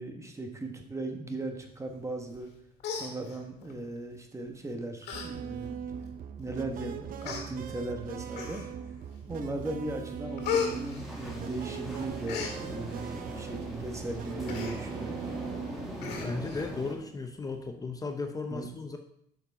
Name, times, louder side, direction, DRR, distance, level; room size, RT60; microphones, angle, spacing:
voice 1, 0.0-2.5 2.9-5.8 6.4-8.6 9.3-15.3 18.5-18.7, right 2 dB, 15° right, 4 dB, 1.3 m, -37 dB
Human voice, 2.3-2.5 2.8-3.7 4.5-4.6 5.0-5.3 5.6-5.7 6.5-6.6 7.2-7.4 8.3-8.9 9.4-9.7 10.0-11.7 12.0-12.6 14.5-14.8 15.1-15.2 15.5-15.6 16.0-16.7 17.0-17.1, left 7 dB, 75° left, 2.0 m, -35 dB
sound 1, 5.1-15.9, right 7 dB, 55° right, 0.6 m, -40 dB
sound 2, 10.4-17.0, equal, ahead, 2.1 m, -41 dB
voice 2, 16.2-19.0, left 3 dB, 20° left, 6 dB, 0.6 m, -35 dB
6.6 x 6.1 x 4.7 m, 0.74 s
cardioid pair, 110°, 17 cm